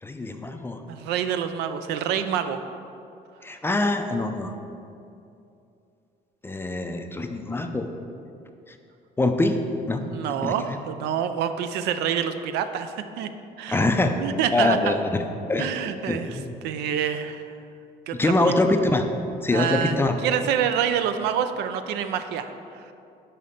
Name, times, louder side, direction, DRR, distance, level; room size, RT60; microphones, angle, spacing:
voice 1, 0.0-0.8 3.4-4.5 6.4-7.9 8.7-8.8 9.2-9.6 9.9-10.0 10.4-10.8 13.7-14.2 14.5-15.2 15.5-15.7 16.1-16.5 18.1-19.1 19.4-20.2, left 2 dB, 15° left, 6 dB, 0.4 m, -24 dB
voice 2, 0.9-2.6 10.1-13.3 13.6-13.8 14.1-15.0 15.6-16.4 16.6-17.5 18.1-18.3 19.5-22.9, right 8 dB, 80° right, 9 dB, 0.4 m, -27 dB
5.7 x 4.1 x 4.9 m, 2.6 s
cardioid pair, 110°, 17 cm